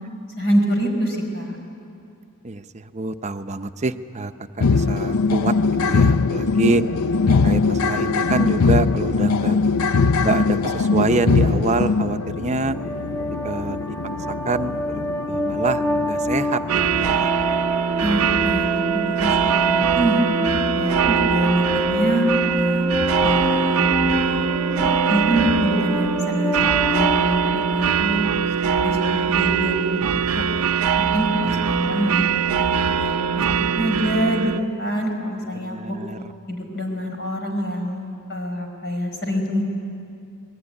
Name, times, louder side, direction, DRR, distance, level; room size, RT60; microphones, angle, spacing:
voice 1, 0.4-1.6 18.0-20.3 20.7-22.9 23.2-24.5 25.1-28.3 28.7-30.4 31.0-32.3 32.5-33.4 33.8-36.0 36.5-39.6, equal, 50° left, 3 dB, 5.0 m, -25 dB
voice 2, 2.4-4.3 4.6-5.5 5.8-6.8 7.3-9.7 10.2-12.8 13.4-14.0 14.3-16.6 17.0-17.8 31.4-31.8 35.5-36.2, right 3 dB, 30° right, 9 dB, 0.7 m, -26 dB
sound 1, 4.6-17.3, left 4 dB, 85° left, 0.6 m, -21 dB
sound 2, 12.7-28.2, equal, 15° left, 1.9 m, -27 dB
sound 3, 16.7-34.6, right 7 dB, 75° right, 0.7 m, -22 dB
25.5 x 20.5 x 9.8 m, 2.5 s
head